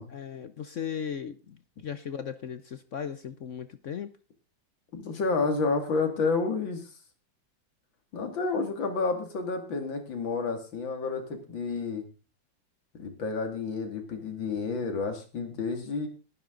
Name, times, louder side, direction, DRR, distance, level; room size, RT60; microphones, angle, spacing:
voice 1, 0.1-4.1, left 8 dB, 55° left, 0.9 m, -37 dB
voice 2, 4.9-6.8 8.1-12.1 13.0-16.1, left 4 dB, 80° left, 3.1 m, -30 dB
18.0 x 10.5 x 3.8 m
omnidirectional pair, 2.1 m